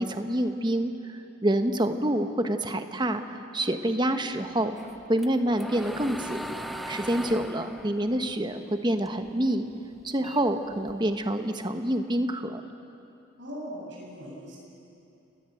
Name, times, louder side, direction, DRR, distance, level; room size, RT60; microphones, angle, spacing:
voice 1, 0.0-4.7 5.1-6.5 6.9-9.6 10.0-12.6, right 1 dB, 20° right, 7 dB, 1.1 m, -27 dB
sound 1, 4.8-9.3 9.7-11.2, equal, ahead, 0.7 m, -39 dB
voice 2, 13.4-14.6, equal, 60° right, -3 dB, 7.6 m, -40 dB
29.5 x 19.5 x 7.8 m, 2.7 s
head